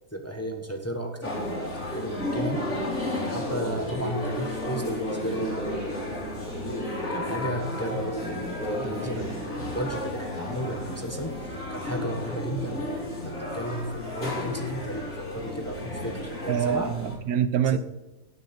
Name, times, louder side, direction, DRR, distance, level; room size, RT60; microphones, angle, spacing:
voice 1, 0.1-2.7 3.3-6.6 7.1-12.9 13.2-16.9 17.7-17.8, equal, 10° left, 1.1 m, -34 dB
sound 1, 1.2-17.2, left 1 dB, 70° left, 3.7 m, -32 dB
voice 2, 16.5-17.8, right 9 dB, 80° right, 1.2 m, -25 dB
18.0 x 6.2 x 4.3 m
omnidirectional pair, 1.5 m